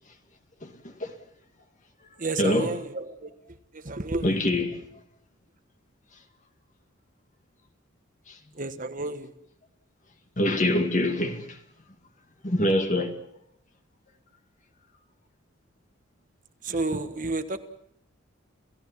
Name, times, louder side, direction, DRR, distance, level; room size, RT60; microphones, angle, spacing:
voice 1, 0.6-1.1 2.4-2.7 4.2-4.9 8.3-8.4 10.4-11.6 12.4-13.2, left 1 dB, 35° left, 2.1 m, -25 dB
voice 2, 2.2-3.4 3.7-4.4 8.5-9.3 16.6-17.6, right 2 dB, 40° right, 1.3 m, -31 dB
28.5 x 16.5 x 7.3 m
head